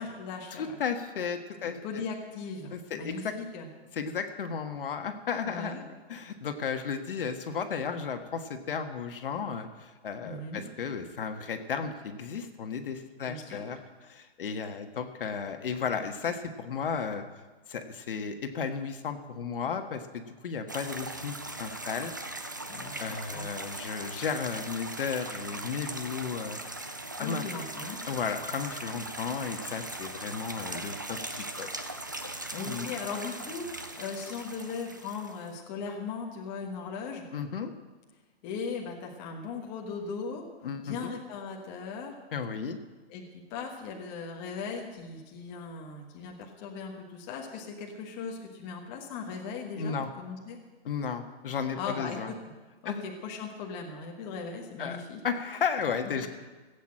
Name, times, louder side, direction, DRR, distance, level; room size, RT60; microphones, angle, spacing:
voice 1, 0.0-0.8 1.6-3.7 5.4-5.8 10.2-10.6 13.2-13.6 22.7-23.5 27.2-28.0 32.5-37.3 38.4-40.4 40.8-42.1 43.1-50.6 51.7-52.5 52.8-55.2 56.2-56.3, left 5 dB, 20° left, 1 dB, 1.2 m, -38 dB
voice 2, 0.6-2.0 2.7-3.3 3.9-5.7 6.1-13.8 14.1-17.2 17.7-22.1 23.0-26.9 27.2-27.4 28.1-31.7 32.7-32.9 37.3-37.7 40.6-41.1 42.3-42.8 49.8-50.1 50.8-52.3 52.8-53.0 54.8-56.3, left 6 dB, 55° left, 6 dB, 1.5 m, -34 dB
sound 1, 20.7-35.5, right 2 dB, 20° right, 0.3 m, -39 dB
16.5 x 8.3 x 7.6 m, 1.3 s
hypercardioid pair, 165°, 32 cm